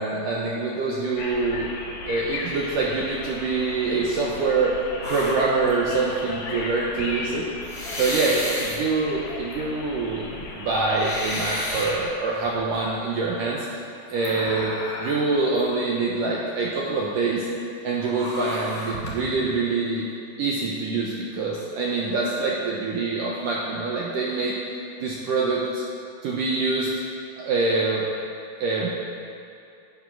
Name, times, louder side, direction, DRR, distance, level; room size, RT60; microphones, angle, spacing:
voice 1, 0.0-1.7 2.1-4.7 5.1-7.5 7.9-10.3 10.6-13.8 14.1-14.7 15.0-17.5 17.8-20.1 20.4-24.5 25.0-25.8 26.2-26.9 27.4-28.1 28.6-28.9, right 3 dB, 70° right, -4 dB, 2.1 m, -25 dB
sound 1, 1.2-12.1, left 3 dB, 70° left, 3.6 m, -36 dB
sound 2, 5.0-5.9 6.7-7.0 7.6-8.8 9.5-9.6 10.1-11.9 12.4-12.8 14.1-15.3 15.5-15.6 18.0-19.4, left 1 dB, 15° left, 1.8 m, -32 dB
11.0 x 9.5 x 6.2 m, 2.6 s
omnidirectional pair, 5.0 m